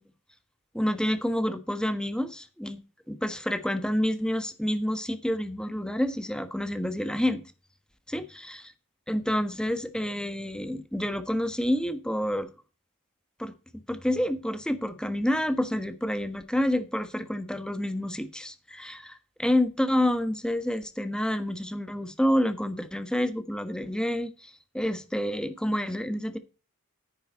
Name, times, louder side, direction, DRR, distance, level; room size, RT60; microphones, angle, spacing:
voice 1, 0.7-2.8 3.1-7.4 8.1-8.6 9.1-12.5 13.4-13.5 13.9-26.4, left 1 dB, 5° left, 1.3 m, -28 dB
9.9 x 9.7 x 4.3 m
head